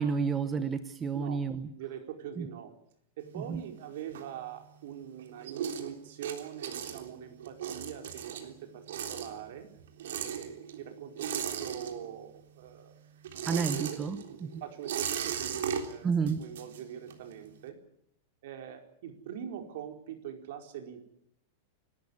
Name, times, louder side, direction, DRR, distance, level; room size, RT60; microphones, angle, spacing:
voice 1, 0.0-1.7 2.4-2.5 3.4-3.6 13.5-14.6 16.0-16.4, right 5 dB, 15° right, 9 dB, 0.9 m, -31 dB
voice 2, 1.8-2.7 3.2-9.7 10.2-13.0 13.5-14.0 14.3-17.8 18.4-21.1, right 9 dB, 60° right, 4 dB, 4.7 m, -43 dB
sound 1, 3.2-4.8 5.1-12.4 12.6-17.3, right 8 dB, 80° right, 3.6 m, -37 dB
28.5 x 13.0 x 9.9 m, 0.73 s
supercardioid pair, 170°, 0 cm